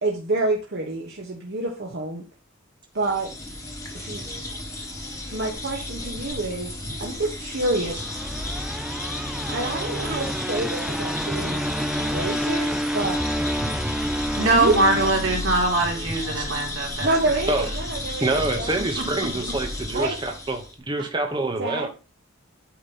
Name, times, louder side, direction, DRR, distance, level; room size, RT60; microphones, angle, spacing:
voice 1, 0.0-2.2 2.9-3.3 3.9-4.2 5.3-6.7 7.0-8.1 9.5-11.6 12.0-13.2 14.5-14.8 17.0-19.5 19.9-20.1 21.6-21.9, right 2 dB, 55° right, -1 dB, 1.0 m, -28 dB
sound 1, 3.0-20.7, left 1 dB, 15° left, 1.3 m, -33 dB
sound 2, 7.7-16.0, equal, 5° right, 0.4 m, -29 dB
voice 2, 14.3-17.1, right 2 dB, 80° right, -1 dB, 2.6 m, -22 dB
voice 3, 18.2-21.9, right 2 dB, 25° right, 3 dB, 0.8 m, -26 dB
8.5 x 2.9 x 5.4 m, 0.33 s
head